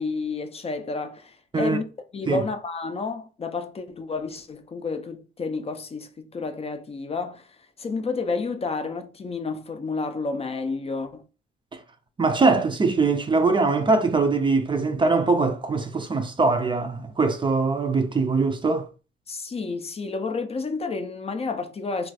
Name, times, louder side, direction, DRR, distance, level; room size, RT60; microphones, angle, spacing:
voice 1, 0.0-1.8 2.1-7.5 7.8-11.2 19.3-22.1, left 4 dB, 30° left, 0.5 m, -30 dB
voice 2, 12.2-18.9, right 3 dB, 25° right, 0.4 m, -22 dB
2.4 x 2.3 x 4.0 m
cardioid pair, 90°, 20 cm